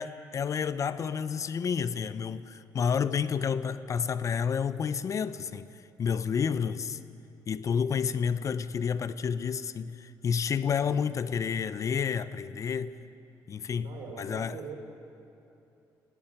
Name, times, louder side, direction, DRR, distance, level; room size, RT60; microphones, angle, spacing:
voice 1, 0.0-5.7 6.0-7.0 7.5-13.0 13.5-13.9 14.2-14.6, left 6 dB, 45° left, 0.8 m, -30 dB
voice 2, 13.8-14.8, right 5 dB, 80° right, 5.0 m, -42 dB
19.0 x 16.5 x 9.7 m
cardioid pair, 90°, 7 cm